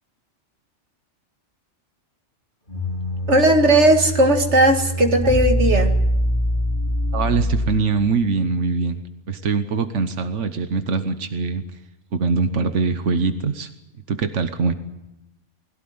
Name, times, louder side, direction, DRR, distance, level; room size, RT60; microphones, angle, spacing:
sound 1, 2.7-8.1, equal, 45° left, 2.8 m, -23 dB
voice 1, 3.3-5.9, right 1 dB, 70° right, 4 dB, 2.4 m, -16 dB
voice 2, 7.1-9.0 9.3-11.6 12.1-13.7 14.1-14.7, right 4 dB, 85° right, 9 dB, 1.5 m, -22 dB
21.5 x 16.5 x 9.6 m, 0.90 s
omnidirectional pair, 1.2 m